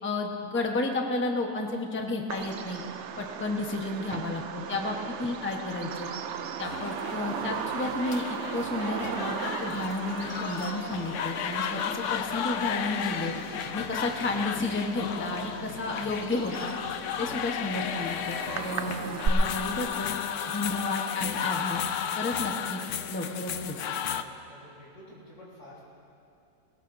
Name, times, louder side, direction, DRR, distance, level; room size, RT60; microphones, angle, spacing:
voice 1, 0.0-2.8 3.2-6.1 6.6-13.3 13.7-16.7 17.2-20.1 20.5-21.8 22.2-22.8 23.1-23.8, left 2 dB, 10° left, 2 dB, 0.7 m, -32 dB
Bird vocalization bird call bird song, 2.3-19.3, right 7 dB, 80° right, 0.6 m, -38 dB
voice 2, 4.8-5.1 15.3-15.7 24.1-25.8, left 1 dB, 65° left, -7 dB, 5.4 m, -51 dB
sound 1, 6.6-24.2, left 8 dB, 80° left, 0.6 m, -34 dB
20.0 x 20.0 x 2.7 m, 2.6 s
omnidirectional pair, 1.9 m